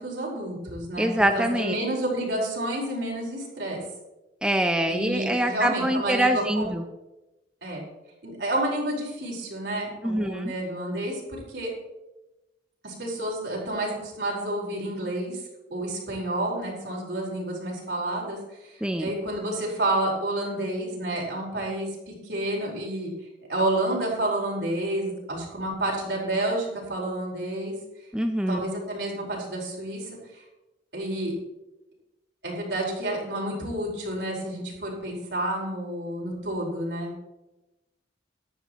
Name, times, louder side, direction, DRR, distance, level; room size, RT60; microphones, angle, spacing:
voice 1, 0.0-1.1 1.3-3.8 4.9-6.7 7.6-7.9 8.2-11.7 12.8-15.4 15.7-18.4 18.7-23.1 23.5-27.7 28.5-30.4 30.9-31.3 32.4-37.1, right 1 dB, 70° right, -2 dB, 4.6 m, -30 dB
voice 2, 1.0-1.8 4.4-6.8 10.0-10.5 18.8-19.1 28.1-28.6, right 1 dB, 5° right, 5 dB, 0.6 m, -24 dB
15.0 x 12.0 x 3.1 m, 1.0 s
head